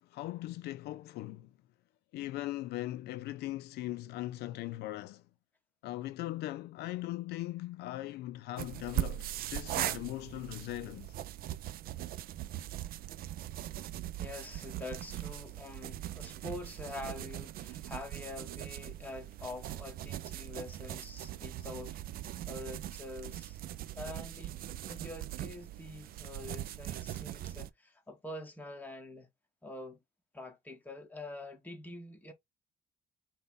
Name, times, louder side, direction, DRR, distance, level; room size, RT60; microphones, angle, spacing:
voice 1, 0.0-1.5 2.1-5.3 5.8-11.2 21.6-21.7, left 16 dB, 75° left, 0.4 m, -39 dB
sound 1, 8.6-27.7, right 13 dB, 60° right, 0.5 m, -40 dB
voice 2, 14.2-22.0 22.5-23.6 23.9-24.6 24.9-29.3 29.6-30.0 30.3-32.3, left 2 dB, 10° left, 1.2 m, -45 dB
5.3 x 2.3 x 3.9 m
cardioid pair, 110°, 17 cm